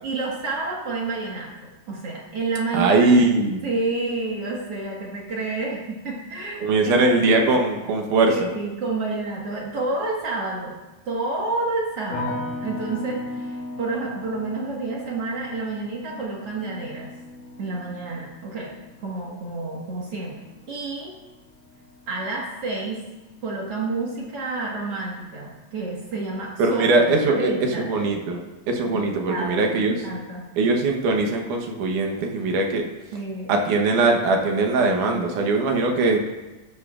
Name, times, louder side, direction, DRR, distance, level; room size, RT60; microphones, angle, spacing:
voice 1, 0.0-3.1 3.6-7.2 8.3-10.8 11.1-17.1 17.6-18.8 19.0-20.4 20.7-21.1 22.1-23.0 23.4-26.8 27.3-27.9 28.8-30.4 33.1-33.6, right 3 dB, 50° right, -3 dB, 2.3 m, -29 dB
voice 2, 2.7-3.7 6.6-8.5 26.6-30.0 30.6-32.8 33.5-36.2, right 3 dB, 75° right, 2 dB, 2.6 m, -21 dB
sound 1, 12.1-23.2 23.4-24.2, left 2 dB, 85° left, 3.3 m, -38 dB
13.5 x 11.5 x 2.5 m, 1.1 s
omnidirectional pair, 3.6 m